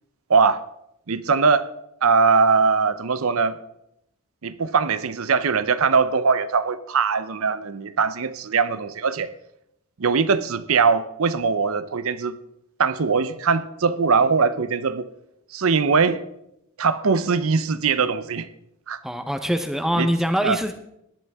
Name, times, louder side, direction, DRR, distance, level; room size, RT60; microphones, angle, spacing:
voice 1, 0.3-0.6 1.1-1.7 2.0-3.6 4.4-9.3 10.0-12.4 12.8-15.1 15.5-16.2 16.8-18.5 18.9-19.0 19.9-20.1 20.4-20.6, right 5 dB, 75° right, 0.7 m, -21 dB
voice 2, 19.0-20.7, equal, ahead, 0.8 m, -23 dB
18.5 x 11.0 x 3.6 m
head